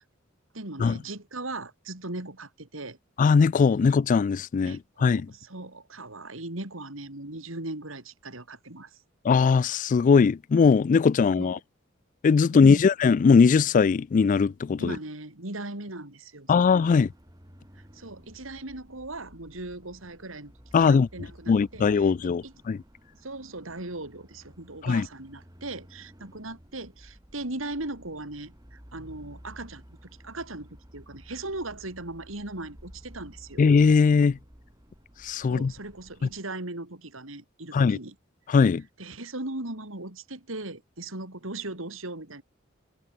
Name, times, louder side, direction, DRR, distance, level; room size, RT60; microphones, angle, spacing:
voice 1, 0.5-3.0 4.6-9.0 11.4-11.6 12.4-12.9 14.8-17.0 17.9-20.5 20.8-22.5 23.2-29.8 30.2-33.6 35.4-38.1 39.0-42.4, right 2 dB, 85° right, 4.3 m, -38 dB
voice 2, 3.2-5.3 9.2-11.6 12.2-15.0 16.5-17.1 20.7-21.1 21.5-22.8 24.8-25.1 33.6-34.4 35.2-35.7 36.2-36.3 37.7-38.0 38.5-38.8, left 5 dB, 40° left, 0.3 m, -20 dB
sound 1, 16.5-36.4, equal, 20° right, 5.4 m, -53 dB
head